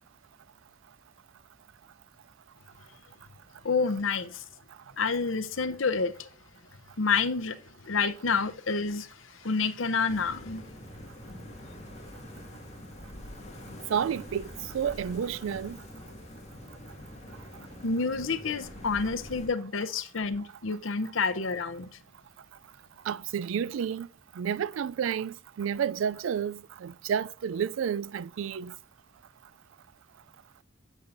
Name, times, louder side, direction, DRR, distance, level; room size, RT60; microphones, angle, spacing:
voice 1, 3.6-4.4 5.0-6.3 7.0-7.6 7.8-9.1 9.4-10.6 17.8-21.9, left 4 dB, 75° left, 0.8 m, -28 dB
sound 1, 10.1-19.5, left 1 dB, 35° left, 2.0 m, -45 dB
voice 2, 13.9-15.8 23.1-24.1 24.4-28.7, right 8 dB, 75° right, 0.3 m, -31 dB
15.5 x 5.5 x 2.6 m
head